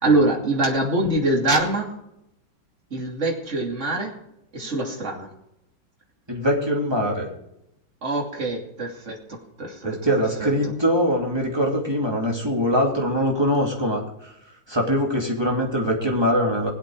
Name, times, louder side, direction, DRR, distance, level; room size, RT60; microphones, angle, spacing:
voice 1, 0.0-2.0 2.9-4.1 4.5-5.3 8.0-10.1 10.4-10.7, right 2 dB, 35° right, -1 dB, 3.1 m, -24 dB
voice 2, 6.3-7.3 9.8-14.3 14.7-16.7, equal, 10° right, -1 dB, 2.8 m, -23 dB
20.0 x 8.1 x 4.9 m, 0.81 s
omnidirectional pair, 2.1 m